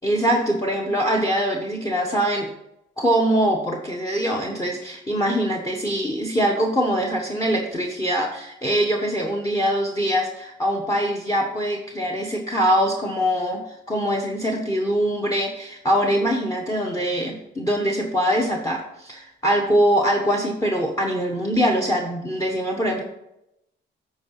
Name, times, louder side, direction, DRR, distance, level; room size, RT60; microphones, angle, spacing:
voice 1, 0.0-2.5 3.0-23.0, equal, 15° left, 1 dB, 1.2 m, -23 dB
8.7 x 4.8 x 5.6 m, 0.86 s
cardioid pair, 90°, 20 cm